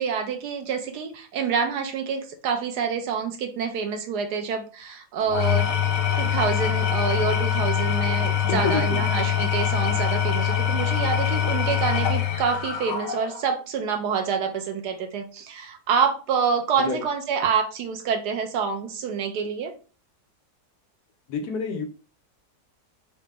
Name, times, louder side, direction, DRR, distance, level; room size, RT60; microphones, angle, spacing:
voice 1, 0.0-5.7 6.2-19.7, right 6 dB, 80° right, 5 dB, 1.2 m, -27 dB
Engine / Tools, 5.2-13.5, left 9 dB, 90° left, 1.3 m, -24 dB
voice 2, 8.3-9.1 16.8-17.0 21.3-21.8, left 5 dB, 70° left, 4 dB, 1.2 m, -28 dB
3.9 x 2.1 x 3.4 m, 0.36 s
omnidirectional pair, 1.8 m